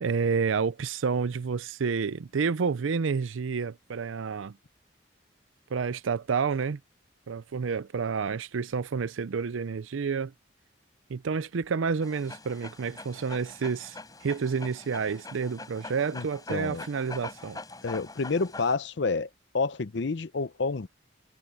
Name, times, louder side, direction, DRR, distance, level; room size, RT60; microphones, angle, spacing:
voice 1, 0.0-4.6 5.7-6.8 7.3-10.3 11.1-14.0 14.2-17.6, right 5 dB, 85° right, 0.5 m, -29 dB
Dog, 12.0-18.8, left 3 dB, 20° left, 7.3 m, -44 dB
voice 2, 16.1-16.8 17.8-20.9, left 4 dB, 65° left, 0.6 m, -29 dB
head